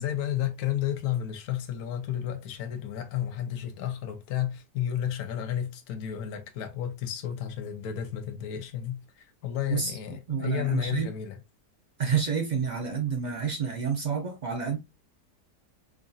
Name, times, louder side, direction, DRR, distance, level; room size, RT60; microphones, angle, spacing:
voice 1, 0.0-11.4, left 10 dB, 70° left, 1.2 m, -32 dB
voice 2, 10.3-11.1 12.0-14.8, right 6 dB, 85° right, 0.4 m, -29 dB
4.9 x 2.6 x 2.4 m
omnidirectional pair, 1.8 m